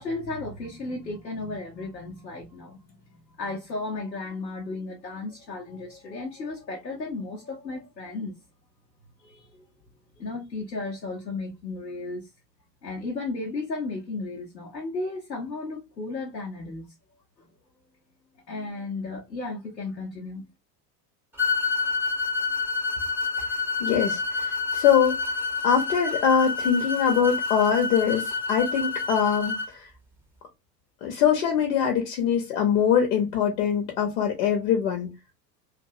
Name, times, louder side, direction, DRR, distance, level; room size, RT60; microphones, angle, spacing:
voice 1, 0.0-8.4 9.2-9.6 10.2-12.3 12.8-16.9 17.4-17.5 18.5-20.5, left 3 dB, 85° left, 0.7 m, -34 dB
sound 1, 21.4-29.7, left 4 dB, 5° right, 0.5 m, -28 dB
voice 2, 23.8-25.4 25.6-29.9 31.0-35.1, left 8 dB, 50° left, 0.7 m, -23 dB
2.6 x 2.3 x 2.6 m
figure-of-eight pair, 75°, 50 cm